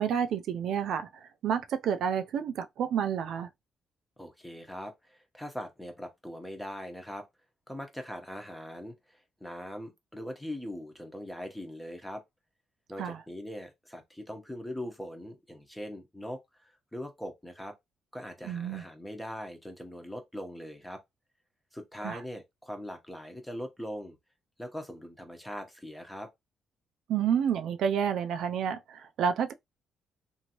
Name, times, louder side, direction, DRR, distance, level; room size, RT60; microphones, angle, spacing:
voice 1, 0.0-3.5 13.0-13.2 18.4-18.8 22.0-22.2 27.1-29.5, right 8 dB, 75° right, 0.3 m, -29 dB
voice 2, 4.2-7.3 7.7-12.2 12.9-17.7 18.1-21.0 21.7-24.2 24.6-26.3, equal, 5° left, 0.9 m, -41 dB
2.9 x 2.6 x 2.8 m
cardioid pair, 90°, 0 cm